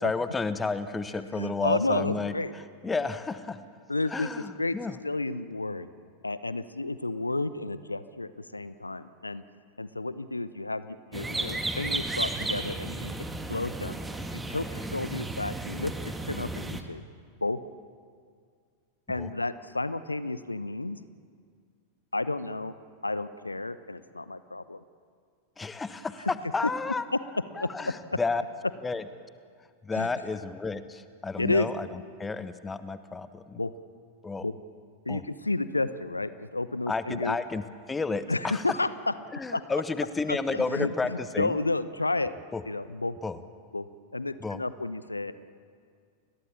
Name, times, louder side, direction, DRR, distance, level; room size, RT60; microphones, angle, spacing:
voice 1, 0.0-2.3 2.8-3.6 4.1-5.0 19.2-19.3 25.6-27.0 27.6-28.4 28.8-29.0 29.8-33.6 34.2-34.5 35.1-35.2 36.9-38.6 39.3-41.6 42.5-42.6 43.2-43.4 44.4-44.6, left 4 dB, 15° left, 12 dB, 1.3 m, -31 dB
voice 2, 1.3-2.5 3.9-4.8 5.0-5.9 6.2-9.4 9.8-13.1 13.5-14.0 14.3-15.9 16.3-17.0 17.4-17.6 19.1-21.0 22.1-22.7 23.0-24.8 27.1-27.2 27.6-27.9 29.9-30.1 31.4-31.7 33.6-33.7 34.4-34.5 35.1-37.4 38.3-39.1 39.5-39.8 40.3-42.3 42.6-43.2 43.7-43.9 44.1-45.3, left 2 dB, 80° left, 15 dB, 0.8 m, -31 dB
sound 1, 11.1-16.8, right 2 dB, 10° right, 1.9 m, -34 dB
30.0 x 21.0 x 7.3 m, 2.1 s
figure-of-eight pair, 90°, 0 cm